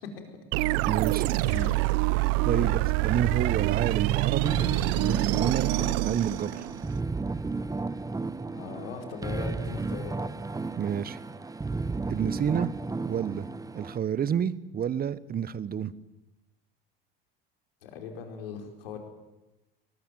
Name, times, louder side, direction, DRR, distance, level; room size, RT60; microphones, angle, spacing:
sound 1, 0.5-7.0, right 19 dB, 55° right, 0.8 m, -26 dB
voice 1, 0.9-1.3 2.4-2.7 3.0-4.6 5.0-5.8 6.0-6.7 10.8-11.2 12.1-12.7 13.0-13.5 13.7-15.9, right 8 dB, 30° right, 18 dB, 1.2 m, -29 dB
voice 2, 1.4-1.7 2.5-2.8 8.5-10.2 17.8-19.0, left 5 dB, 75° left, 5 dB, 4.7 m, -38 dB
sound 2, 4.4-14.0, right 3 dB, 10° right, 1.1 m, -33 dB
22.5 x 20.5 x 9.2 m, 1.1 s
hypercardioid pair, 70°, 29 cm